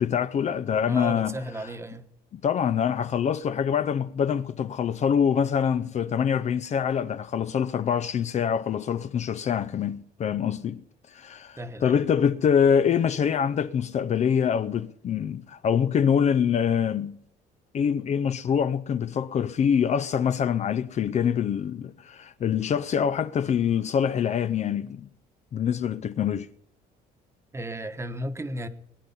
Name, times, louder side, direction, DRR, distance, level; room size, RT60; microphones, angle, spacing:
voice 1, 0.0-1.4 2.3-10.8 11.1-17.2 17.7-25.1 25.5-26.5, left 8 dB, 40° left, 0.6 m, -25 dB
voice 2, 0.9-2.1 11.6-12.0 27.5-28.7, right 1 dB, 15° right, 1.2 m, -34 dB
21.5 x 9.9 x 5.5 m
cardioid pair, 110°, 17 cm